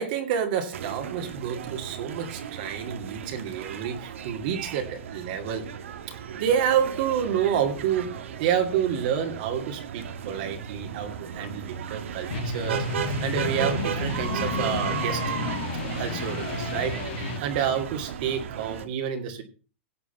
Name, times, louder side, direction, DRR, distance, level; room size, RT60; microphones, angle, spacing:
voice 1, 0.0-5.6 6.1-12.9 13.2-15.3 16.0-17.0 17.4-19.4, right 8 dB, 45° right, 5 dB, 2.5 m, -29 dB
sound 1, 0.7-18.9, right 8 dB, 75° right, 2.1 m, -35 dB
sound 2, 12.3-17.4, left 5 dB, 50° left, 1.8 m, -31 dB
17.0 x 8.4 x 5.5 m, 0.35 s
supercardioid pair, 165°, 7 cm